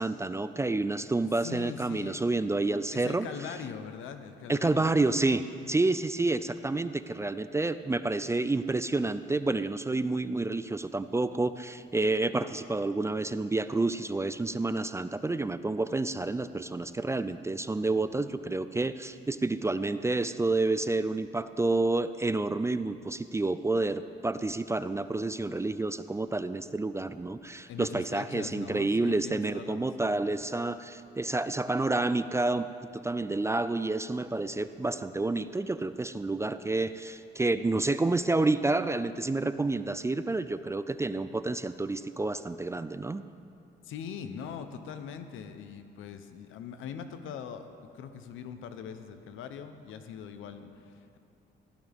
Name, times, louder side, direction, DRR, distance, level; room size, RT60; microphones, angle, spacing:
voice 1, 0.0-3.3 4.5-32.7 32.9-43.2, right 2 dB, 15° right, 12 dB, 0.4 m, -29 dB
voice 2, 1.4-2.2 2.9-5.0 27.7-30.2 43.8-47.7 47.9-51.2, left 7 dB, 85° left, 9 dB, 0.9 m, -42 dB
15.5 x 13.0 x 3.6 m, 2.5 s
cardioid pair, 90°, 20 cm